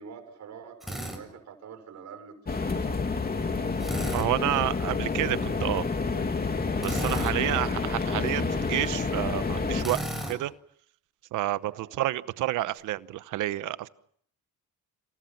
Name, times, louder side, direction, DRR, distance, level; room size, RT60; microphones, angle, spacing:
voice 1, 0.0-3.0 7.2-7.8 11.7-11.9, right 6 dB, 65° right, 6 dB, 6.5 m, -45 dB
Drill, 0.8-1.2 3.8-4.3 6.8-7.4 9.8-10.4, right 1 dB, ahead, 7.4 m, -34 dB
sound 1, 2.5-9.8, left 4 dB, 30° left, 3.0 m, -29 dB
voice 2, 4.1-5.9 6.8-10.5 11.3-13.9, right 15 dB, 85° right, 15 dB, 1.0 m, -29 dB
29.0 x 27.5 x 6.0 m, 0.65 s
cardioid pair, 90°, 30 cm